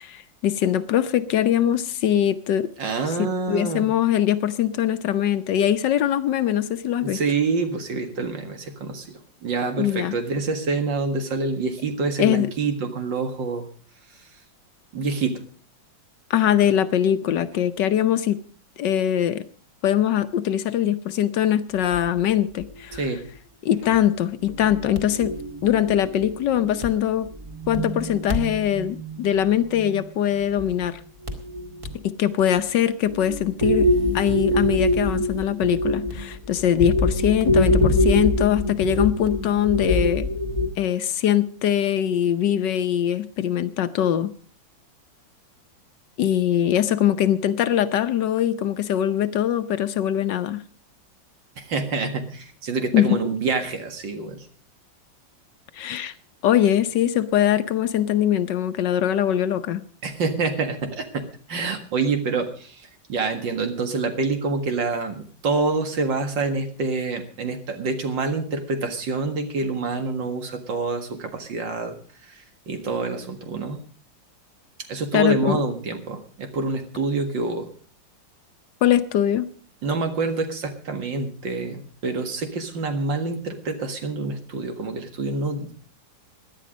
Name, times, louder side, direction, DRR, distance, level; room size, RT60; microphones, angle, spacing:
voice 1, 0.0-2.7 3.2-7.2 9.8-10.1 12.2-12.5 16.3-18.4 18.8-19.4 19.8-23.0 23.6-25.3 25.6-27.3 27.7-31.0 32.0-33.9 34.1-40.3 40.8-44.3 46.2-50.6 52.9-53.2 55.8-56.1 56.4-59.8 75.1-75.6 78.8-79.5, left 10 dB, 70° left, 12 dB, 1.4 m, -22 dB
voice 2, 2.8-3.9 7.0-13.7 14.9-15.4 22.9-23.2 51.6-54.5 60.0-72.0 72.2-73.8 74.9-77.7 79.8-85.7, right 3 dB, 70° right, 6 dB, 2.5 m, -27 dB
sound 1, 21.9-22.1 22.6-23.0 23.3-23.4 23.9-24.0 24.5-26.9 27.3-30.1 30.4-30.9 31.2-32.0 32.4-32.7 33.1-40.7, left 1 dB, 15° right, 2.0 m, -25 dB
17.0 x 11.0 x 5.1 m, 0.43 s
omnidirectional pair, 2.1 m